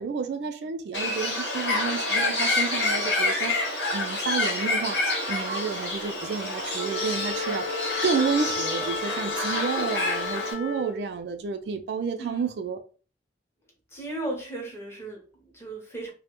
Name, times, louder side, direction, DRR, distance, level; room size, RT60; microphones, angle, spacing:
voice 1, 0.0-3.5 3.9-5.0 5.3-7.6 8.0-12.8, right 5 dB, 65° right, 0.3 m, -30 dB
Bird, 0.9-10.5, left 2 dB, 85° left, 0.9 m, -28 dB
Wind instrument woodwind instrument, 6.7-11.1, left 4 dB, 55° left, 0.8 m, -33 dB
voice 2, 12.2-12.5 13.9-16.1, right 2 dB, 15° left, 0.6 m, -36 dB
2.1 x 2.0 x 2.9 m
head